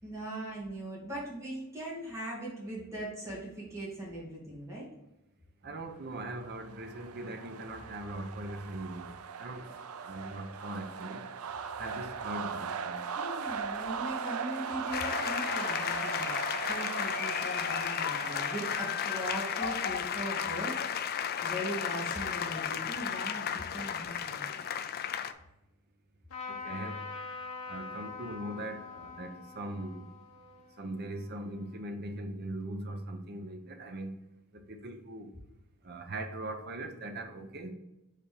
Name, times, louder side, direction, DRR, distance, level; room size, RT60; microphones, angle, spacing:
voice 1, 0.0-4.9 13.1-16.4 16.7-20.8 21.4-24.4, right 1 dB, 15° right, -6 dB, 2.3 m, -40 dB
voice 2, 5.6-9.7 10.0-11.3 11.8-13.1 26.5-27.1 27.7-30.1 30.8-34.1 34.5-35.3 35.8-37.7, right 1 dB, 45° right, 5 dB, 0.8 m, -40 dB
sound 1, 6.2-22.9, right 6 dB, 75° right, 0.5 m, -40 dB
sound 2, 14.9-25.3, left 8 dB, 45° left, 0.3 m, -33 dB
Trumpet, 26.3-31.8, left 5 dB, 70° left, 1.3 m, -44 dB
5.0 x 4.2 x 5.1 m, 0.91 s
head